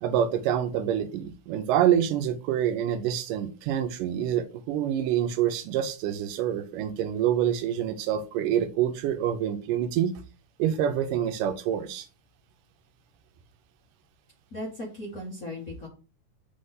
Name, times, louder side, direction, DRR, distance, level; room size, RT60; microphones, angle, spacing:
voice 1, 0.0-10.1 10.6-12.1, right 10 dB, 90° right, 8 dB, 2.4 m, -26 dB
voice 2, 14.5-15.9, left 1 dB, 45° left, -5 dB, 1.2 m, -37 dB
6.0 x 3.4 x 5.5 m, 0.34 s
omnidirectional pair, 3.7 m